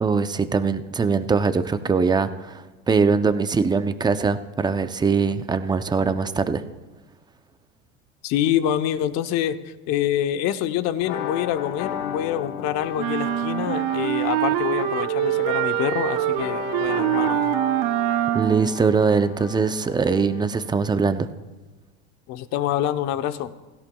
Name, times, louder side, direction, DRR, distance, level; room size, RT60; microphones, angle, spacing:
voice 1, 0.0-6.6 18.3-21.3, right 5 dB, 10° right, 11 dB, 0.5 m, -22 dB
voice 2, 8.2-17.4 22.3-23.5, left 11 dB, 50° left, 11 dB, 0.8 m, -26 dB
sound 1, 11.0-20.6, left 9 dB, 70° left, 1.1 m, -34 dB
sound 2, 13.0-18.7, right 16 dB, 60° right, 0.5 m, -24 dB
17.0 x 16.5 x 2.3 m, 1.2 s
supercardioid pair, 115°, 34 cm